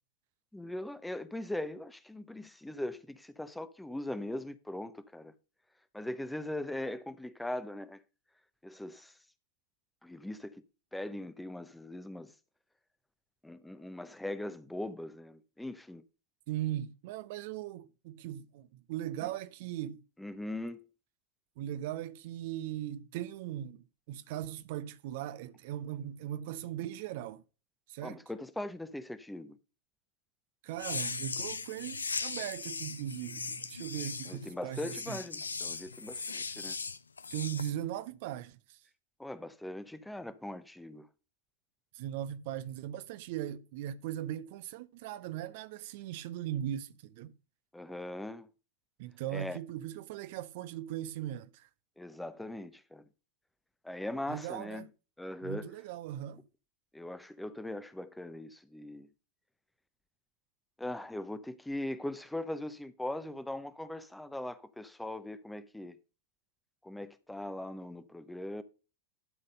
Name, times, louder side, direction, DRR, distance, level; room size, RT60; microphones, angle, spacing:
voice 1, 0.5-5.3 5.9-8.0 8.6-9.1 10.0-10.6 10.9-12.3 13.4-16.0 20.2-20.9 28.0-29.6 34.3-36.8 39.2-41.1 47.7-48.5 49.3-49.6 52.0-53.0 53.8-54.9 55.2-55.7 56.9-59.1 60.8-66.0 66.8-68.6, left 1 dB, 5° left, 0.7 m, -40 dB
voice 2, 16.5-20.0 21.6-27.4 27.9-28.2 30.6-35.2 37.3-38.8 41.9-47.3 49.0-51.7 54.3-54.9 55.4-56.4, right 12 dB, 50° right, 0.5 m, -39 dB
sound 1, 30.7-37.7, left 4 dB, 75° left, 0.5 m, -38 dB
12.0 x 4.1 x 5.2 m
figure-of-eight pair, 90°, 0 cm